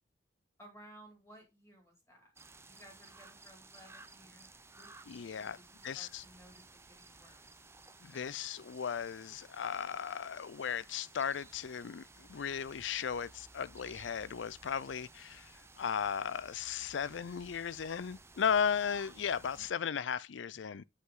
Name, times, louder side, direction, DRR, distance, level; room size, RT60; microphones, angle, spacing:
voice 1, 0.6-2.3 2.6-7.7 12.1-12.4 19.5-19.7, right 1 dB, 15° left, 2.6 m, -59 dB
sound 1, 2.4-19.7, right 3 dB, 15° right, 0.6 m, -57 dB
voice 2, 5.1-5.6 5.8-6.2 8.0-20.8, left 7 dB, 85° left, 0.5 m, -36 dB
8.1 x 5.4 x 3.8 m
head